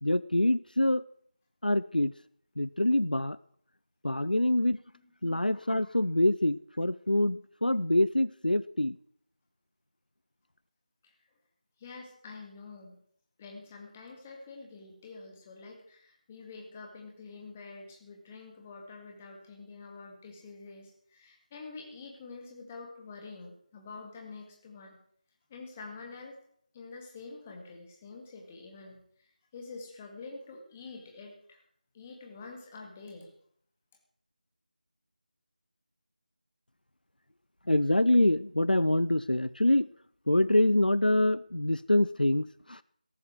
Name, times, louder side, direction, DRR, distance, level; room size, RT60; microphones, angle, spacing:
voice 1, 0.0-1.0 1.6-2.1 2.6-3.4 4.0-4.8 5.2-9.0 37.7-39.9 40.3-42.8, left 1 dB, 80° left, 18 dB, 0.6 m, -25 dB
voice 2, 11.8-13.0 13.4-25.0 25.5-26.3 26.7-31.6 31.9-33.3, left 4 dB, 15° left, 1 dB, 2.1 m, -47 dB
17.5 x 14.0 x 4.7 m, 0.63 s
figure-of-eight pair, 165°, 5 cm